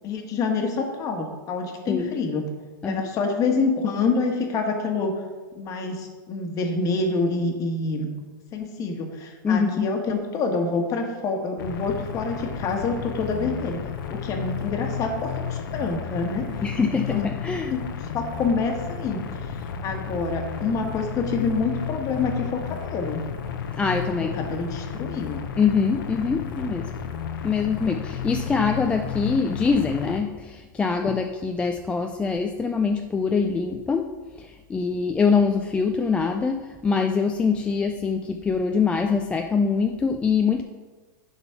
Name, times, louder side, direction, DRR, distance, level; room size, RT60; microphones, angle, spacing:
voice 1, 0.0-2.4 2.8-5.1 5.6-8.1 8.5-13.8 14.1-17.3 17.7-17.8 18.1-23.2 24.1-25.4, left 4 dB, 30° left, 3 dB, 1.4 m, -27 dB
voice 2, 9.4-9.9 16.6-17.7 23.8-24.4 25.6-26.9 27.4-40.6, left 5 dB, 10° left, 4 dB, 0.3 m, -24 dB
sound 1, 11.6-30.2, left 7 dB, 70° left, 0.9 m, -33 dB
11.0 x 4.0 x 5.7 m, 1.4 s
hypercardioid pair, 140°, 12 cm